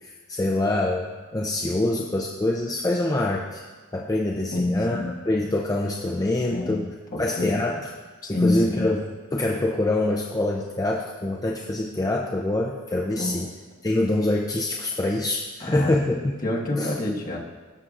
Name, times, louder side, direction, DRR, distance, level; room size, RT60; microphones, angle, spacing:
voice 1, 0.0-3.6 3.9-6.9 7.2-7.8 8.3-13.5 13.8-16.3 16.8-16.9, left 2 dB, 15° left, -1 dB, 0.5 m, -25 dB
voice 2, 4.5-5.1 6.5-6.8 7.1-7.6 8.2-8.9 13.2-13.5 15.6-15.9 16.4-17.4, left 1 dB, 40° left, -2 dB, 1.4 m, -27 dB
17.0 x 6.7 x 2.5 m, 1.4 s
head